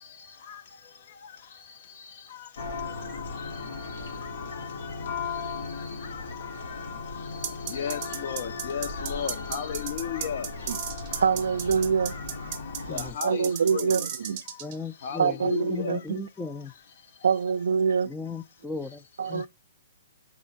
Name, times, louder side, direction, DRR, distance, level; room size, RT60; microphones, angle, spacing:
Church bell, 2.6-13.1, left 4 dB, 70° left, 1.1 m, -37 dB
sound 1, 7.4-14.8, right 10 dB, 30° right, 0.7 m, -34 dB
voice 1, 7.7-10.5 12.9-14.0 15.0-16.0, left 8 dB, 50° left, 0.6 m, -33 dB
voice 2, 11.1-12.5 13.2-14.4 15.2-16.2 17.2-18.1 19.2-19.5, right 6 dB, 75° right, 0.4 m, -25 dB
voice 3, 14.6-15.4 15.7-16.7 18.1-19.0 19.3-19.5, left 4 dB, 5° left, 0.3 m, -36 dB
4.2 x 3.7 x 2.7 m
hypercardioid pair, 150°, 0 cm